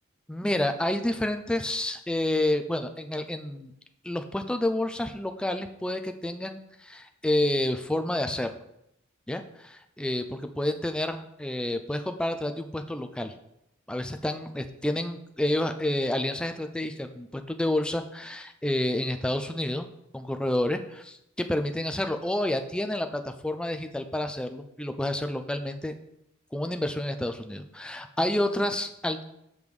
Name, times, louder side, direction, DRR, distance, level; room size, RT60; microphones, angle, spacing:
voice 1, 0.3-3.7 4.0-8.5 9.3-13.3 13.9-19.9 20.1-25.9 26.5-29.2, left 1 dB, 5° left, 7 dB, 0.3 m, -29 dB
6.8 x 5.3 x 3.2 m, 0.82 s
head